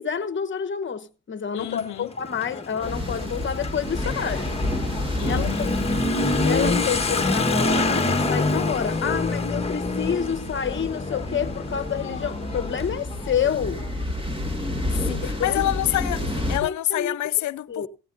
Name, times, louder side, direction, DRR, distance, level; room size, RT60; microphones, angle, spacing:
voice 1, 0.0-4.5 5.3-5.7 6.4-13.9 15.1-15.6 16.6-17.2 17.7-17.9, left 7 dB, 40° left, 1.2 m, -28 dB
voice 2, 1.5-2.1 5.2-5.7 15.1-17.9, left 14 dB, 70° left, 0.7 m, -27 dB
Motorcycle / Accelerating revving vroom, 1.6-13.9, left 2 dB, 20° left, 1.5 m, -27 dB
sound 1, 2.8-16.6, left 1 dB, 20° right, 2.8 m, -30 dB
17.0 x 16.5 x 2.7 m
cardioid pair, 90°, 30 cm